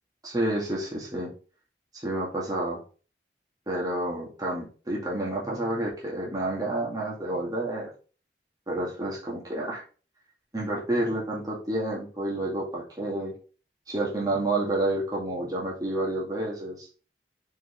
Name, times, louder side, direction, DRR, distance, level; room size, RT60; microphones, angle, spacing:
voice 1, 0.2-1.3 2.0-2.8 3.7-7.9 8.7-9.8 10.5-13.3 13.9-16.9, right 1 dB, 20° right, -5 dB, 2.2 m, -29 dB
6.1 x 4.8 x 3.6 m, 0.37 s
head